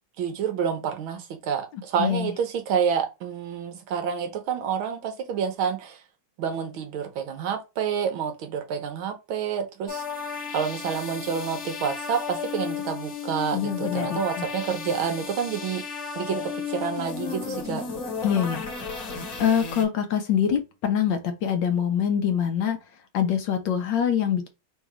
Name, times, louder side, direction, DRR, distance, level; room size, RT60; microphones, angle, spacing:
voice 1, 0.2-6.0 6.4-10.0 10.5-15.8 16.1-17.8, right 7 dB, 75° right, 1.6 m, -28 dB
voice 2, 1.7-2.3 13.5-14.5 18.2-18.7 19.4-22.8 23.1-24.5, left 8 dB, 70° left, 1.2 m, -25 dB
sound 1, 9.9-19.8, left 6 dB, 50° left, 1.4 m, -34 dB
3.9 x 2.7 x 4.7 m
omnidirectional pair, 2.3 m